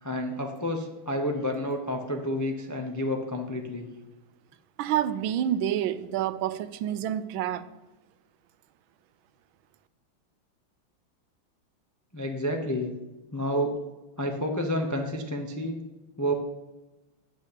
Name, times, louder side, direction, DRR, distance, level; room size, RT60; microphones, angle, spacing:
voice 1, 0.0-3.9 12.1-12.9 13.3-13.8 14.2-15.8 16.2-16.3, equal, 25° left, 3 dB, 0.3 m, -29 dB
voice 2, 4.8-7.7, right 10 dB, 80° right, 13 dB, 1.3 m, -28 dB
8.2 x 6.3 x 8.2 m, 1.1 s
omnidirectional pair, 2.3 m